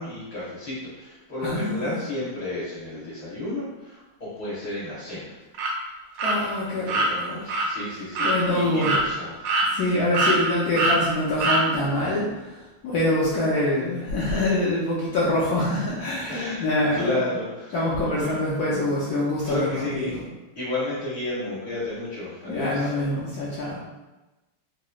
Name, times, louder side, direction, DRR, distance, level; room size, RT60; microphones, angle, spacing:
voice 1, 0.0-5.4 6.3-9.4 16.3-16.6 16.9-17.8 18.2-18.3 19.5-20.2 20.6-23.0, left 2 dB, 50° left, -10 dB, 1.3 m, -32 dB
voice 2, 1.4-1.8 6.2-7.4 8.2-8.9 9.7-12.2 12.8-16.3 16.6-17.1 17.7-20.0 22.5-23.8, left 1 dB, 80° left, -6 dB, 0.8 m, -25 dB
sound 1, 5.5-5.7 6.2-6.4 6.9-7.1 7.5-7.7 8.2-8.4 8.8-9.0 9.4-9.9 10.1-10.4 10.8-11.0 11.4-11.6, right 2 dB, 75° right, 1.4 m, -22 dB
4.0 x 3.0 x 2.2 m, 1.1 s
omnidirectional pair, 2.4 m